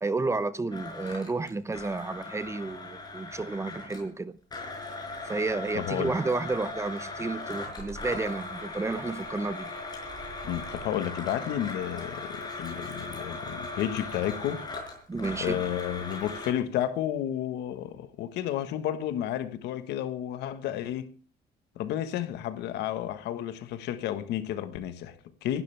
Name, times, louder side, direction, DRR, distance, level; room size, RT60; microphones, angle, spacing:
voice 1, 0.0-4.3 5.2-9.7 15.1-15.6, right 3 dB, 15° right, 0.8 m, -31 dB
Domestic sounds home sounds, 0.7-4.1 4.5-16.5, left 2 dB, 25° left, 5.5 m, -38 dB
voice 2, 5.7-6.1 10.4-14.6 15.4-21.1 21.7-25.6, left 11 dB, 80° left, 1.4 m, -32 dB
26.5 x 11.5 x 3.4 m
cardioid pair, 110°, 17 cm